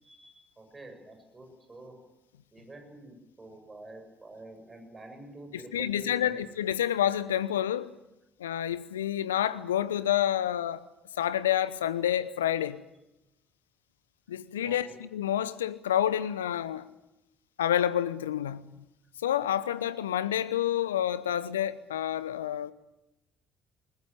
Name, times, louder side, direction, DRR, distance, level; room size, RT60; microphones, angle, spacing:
voice 1, 0.0-2.0 2.5-6.4 14.6-14.8, right 2 dB, 25° right, 7.7 m, -47 dB
voice 2, 5.5-7.9 8.4-10.8 11.2-12.8 14.3-16.9 17.6-18.7 19.2-22.7, left 11 dB, 80° left, 0.9 m, -28 dB
21.0 x 20.5 x 9.0 m
figure-of-eight pair, 50°, 0 cm